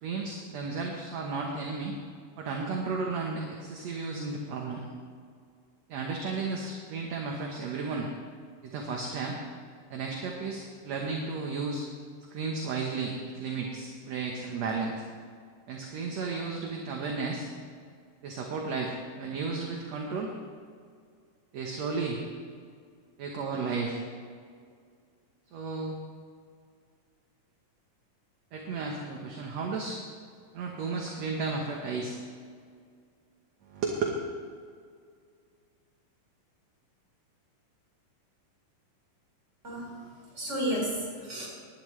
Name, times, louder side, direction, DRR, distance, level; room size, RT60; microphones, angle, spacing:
voice 1, 0.0-2.0 2.4-4.8 5.9-8.1 8.6-9.4 9.9-11.8 12.3-14.9 15.7-17.5 18.2-20.3 21.5-22.2 23.2-24.0 25.5-26.0 28.5-30.0 30.5-32.2 33.6-34.2, right 4 dB, 60° right, 0 dB, 2.0 m, -33 dB
voice 2, 39.6-41.5, equal, 20° right, -4 dB, 4.3 m, -33 dB
19.0 x 11.5 x 3.2 m, 2.2 s
omnidirectional pair, 3.9 m